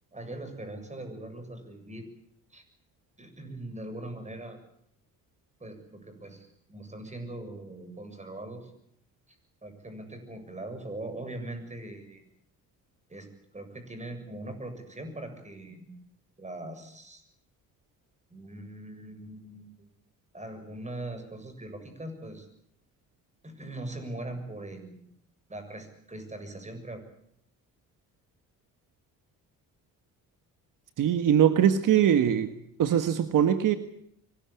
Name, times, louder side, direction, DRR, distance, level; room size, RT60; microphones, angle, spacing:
voice 1, 0.1-2.1 2.5-2.6 3.2-4.6 5.6-8.7 9.3-9.4 9.6-12.2 13.1-15.9 16.4-17.2 18.3-19.9 20.3-22.5 23.4-25.1 25.5-27.0, right 1 dB, 20° right, 8 dB, 7.4 m, -41 dB
voice 2, 31.0-32.5 32.8-33.8, right 9 dB, 65° right, 9 dB, 1.6 m, -22 dB
24.0 x 19.5 x 8.6 m, 0.72 s
cardioid pair, 85°, 34 cm